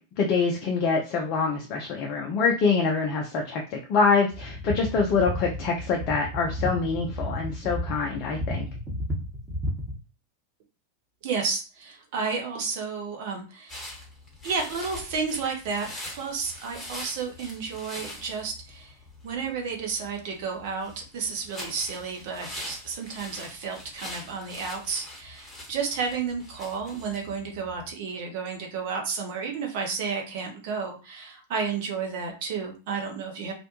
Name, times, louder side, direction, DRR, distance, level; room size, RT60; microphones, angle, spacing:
voice 1, 0.2-8.7, left 4 dB, 40° left, 1 dB, 0.5 m, -25 dB
sound 1, 4.3-10.0, left 1 dB, 5° right, 0.9 m, -33 dB
voice 2, 11.2-13.8 14.4-18.9 19.2-33.5, right 5 dB, 50° right, 3 dB, 0.7 m, -32 dB
sound 2, 13.7-27.9, left 1 dB, 15° left, 1.1 m, -43 dB
2.5 x 2.1 x 2.8 m, 0.33 s
figure-of-eight pair, 90°, 0 cm